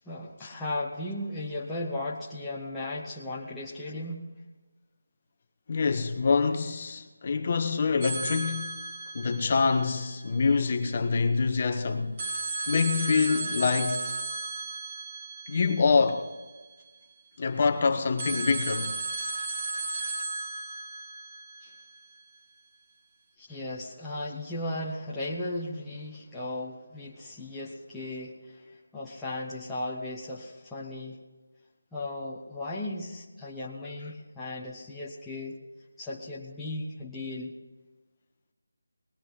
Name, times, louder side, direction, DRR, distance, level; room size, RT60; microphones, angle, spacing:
voice 1, 0.0-4.3 21.6-21.7 23.4-31.2 31.9-35.6 36.0-37.6, left 1 dB, 5° left, 0.8 m, -36 dB
voice 2, 5.7-8.8 9.1-12.1 12.7-14.0 15.5-16.3 17.4-18.9, left 4 dB, 30° left, 1.0 m, -25 dB
sound 1, 8.0-10.9 12.2-17.1 18.2-22.4, right 3 dB, 20° right, 1.2 m, -35 dB
19.5 x 12.0 x 3.8 m
figure-of-eight pair, 175°, 0 cm